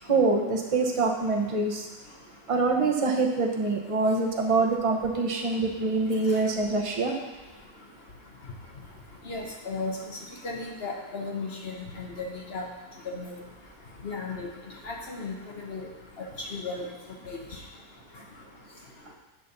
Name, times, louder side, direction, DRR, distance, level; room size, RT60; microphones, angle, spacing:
voice 1, 0.0-1.9 2.5-7.2, right 3 dB, 30° right, 0 dB, 0.6 m, -25 dB
voice 2, 9.3-10.0 10.4-12.6 13.0-13.3 14.0-14.5 14.8-15.9 16.4-16.9 17.3-17.4, left 3 dB, 45° left, 0 dB, 1.0 m, -35 dB
8.6 x 4.2 x 6.7 m, 1.1 s
omnidirectional pair, 1.9 m